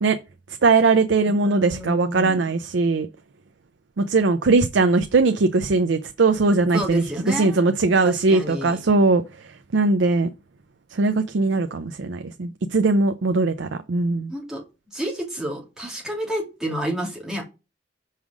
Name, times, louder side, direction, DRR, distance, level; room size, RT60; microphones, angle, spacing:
voice 1, 0.6-3.1 4.0-9.2 9.7-10.3 10.9-14.3, right 3 dB, 85° right, 0.5 m, -20 dB
voice 2, 1.2-2.5 6.7-7.6 8.0-8.8 14.3-14.6 14.9-17.4, equal, 5° right, 2.4 m, -30 dB
5.6 x 4.9 x 6.2 m
head